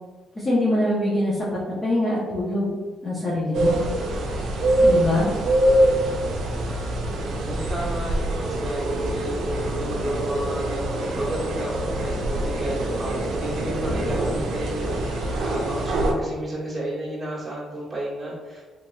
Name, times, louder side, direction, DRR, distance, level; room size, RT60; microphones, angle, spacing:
voice 1, 0.4-1.4 1.8-2.7 3.0-3.8 4.8-5.3, left 1 dB, 25° left, -8 dB, 0.8 m, -23 dB
sound 1, 3.5-16.1, right 1 dB, 75° right, 0.5 m, -24 dB
voice 2, 7.1-18.8, right 1 dB, 15° right, -7 dB, 1.3 m, -32 dB
3.1 x 2.8 x 2.3 m, 1.4 s
cardioid pair, 90°, 0 cm